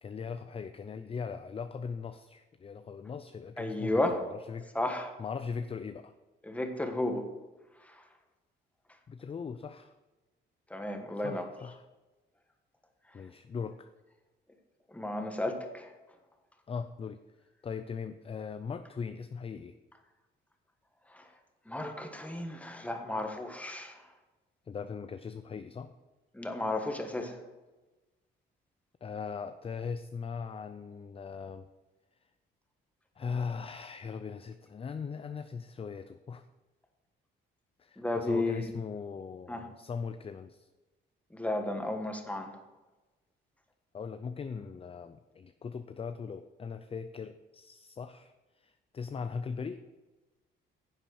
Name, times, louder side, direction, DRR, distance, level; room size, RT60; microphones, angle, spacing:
voice 1, 0.0-4.0 4.3-4.7 5.2-6.1 9.1-9.9 11.2-11.8 13.1-13.9 16.7-17.2 17.6-19.8 24.7-25.9 29.0-31.7 33.2-36.5 37.8-40.7 43.9-49.8, left 5 dB, 30° left, 10 dB, 0.5 m, -39 dB
voice 2, 3.6-4.2 4.7-5.1 6.4-7.3 7.8-8.0 10.7-11.5 13.1-13.2 14.9-15.9 21.1-21.3 21.6-24.1 26.3-27.4 38.0-38.7 39.5-39.7 41.3-42.6, left 1 dB, 5° left, 5 dB, 1.5 m, -33 dB
10.5 x 7.4 x 4.8 m, 1.2 s
cardioid pair, 90°, 20 cm